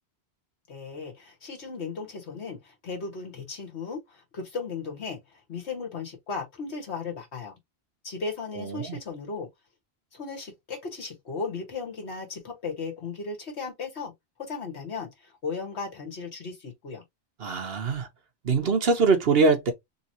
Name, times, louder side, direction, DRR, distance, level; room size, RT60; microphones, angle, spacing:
voice 1, 0.7-7.6 8.0-9.5 10.1-14.1 14.4-17.0, left 4 dB, 80° left, 1.8 m, -36 dB
voice 2, 8.6-9.0 17.4-18.1 18.4-19.7, right 4 dB, 65° right, 1.1 m, -23 dB
3.8 x 3.1 x 2.7 m
omnidirectional pair, 1.1 m